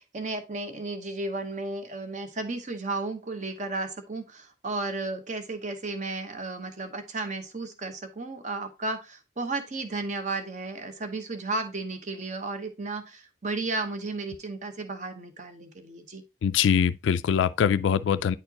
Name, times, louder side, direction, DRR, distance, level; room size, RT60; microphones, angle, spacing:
voice 1, 0.0-16.2, right 3 dB, 40° right, 0.9 m, -34 dB
voice 2, 16.4-18.4, left 7 dB, 80° left, 0.3 m, -23 dB
9.4 x 4.3 x 2.8 m
head